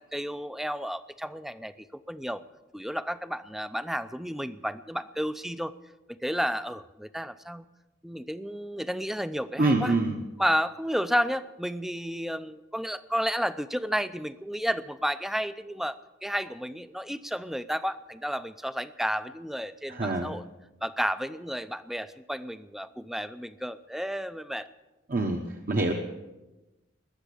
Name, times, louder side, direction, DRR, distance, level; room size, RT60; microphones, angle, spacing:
voice 1, 0.0-2.4 2.7-5.7 6.2-7.6 8.0-10.0 10.4-20.4 20.8-24.7, equal, ahead, 13 dB, 0.5 m, -32 dB
voice 2, 9.6-10.2 19.9-20.3 25.1-25.4 25.7-25.9, right 2 dB, 45° right, 3 dB, 1.1 m, -25 dB
20.5 x 7.3 x 8.4 m, 1.1 s
head